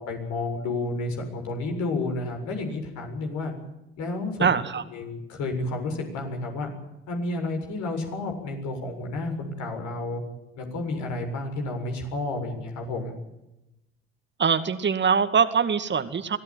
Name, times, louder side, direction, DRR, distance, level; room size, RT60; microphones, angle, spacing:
voice 1, 0.0-3.5 4.0-4.4 4.9-6.7 7.1-10.2 10.6-13.2, left 2 dB, 65° left, 4 dB, 7.5 m, -31 dB
voice 2, 4.4-4.8 14.4-16.4, right 6 dB, 35° right, 10 dB, 2.1 m, -23 dB
24.0 x 16.5 x 9.2 m, 0.92 s
hypercardioid pair, 65°, 32 cm